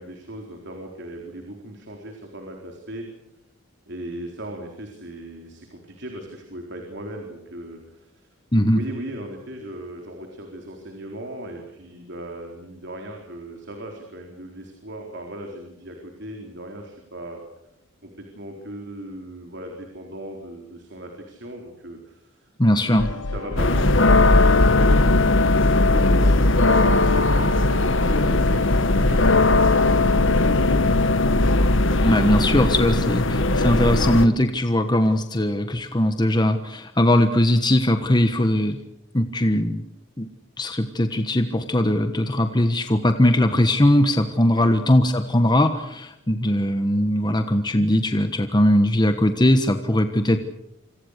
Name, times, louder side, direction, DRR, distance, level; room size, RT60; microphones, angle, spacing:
voice 1, 0.0-3.1 3.9-8.3 8.7-17.4 18.0-30.9 44.5-44.8, right 1 dB, 55° right, 2 dB, 4.2 m, -38 dB
voice 2, 8.5-8.8 22.6-23.1 32.0-38.8 39.1-39.8 40.2-40.3 40.6-50.4, left 1 dB, 20° left, 7 dB, 1.3 m, -20 dB
sound 1, 23.0-32.5, left 2 dB, 75° left, 1.0 m, -29 dB
sound 2, 23.6-34.3, left 2 dB, 60° left, 1.6 m, -18 dB
28.0 x 26.0 x 6.7 m, 0.81 s
head